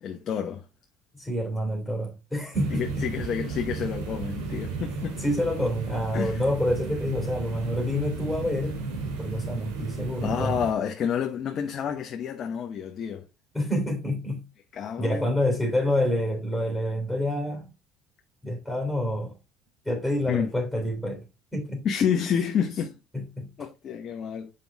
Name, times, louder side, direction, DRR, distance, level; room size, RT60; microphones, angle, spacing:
voice 1, 0.0-0.6 2.7-5.2 6.1-6.4 10.2-13.2 14.7-15.3 20.3-20.5 21.8-22.9 23.6-24.5, left 8 dB, 50° left, 0.9 m, -29 dB
voice 2, 1.1-3.1 5.2-8.8 9.2-10.6 13.5-14.4 15.0-17.7 18.4-19.3 19.8-21.2 21.5-21.8 23.1-23.7, left 1 dB, ahead, 3.1 m, -27 dB
sound 1, 2.5-10.7, right 4 dB, 90° right, 2.2 m, -34 dB
6.9 x 5.4 x 3.4 m
supercardioid pair, 90°, 0 cm